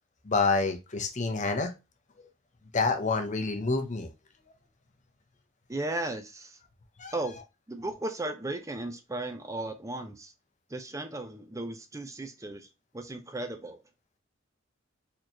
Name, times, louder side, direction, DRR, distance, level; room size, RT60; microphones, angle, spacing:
voice 1, 0.2-1.7 2.7-4.1 7.0-7.1, left 4 dB, 40° left, 0.8 m, -27 dB
voice 2, 5.7-6.6 7.1-7.4 7.7-10.3 10.7-12.7 12.9-13.8, right 2 dB, 15° right, 0.5 m, -35 dB
4.3 x 3.1 x 2.7 m
head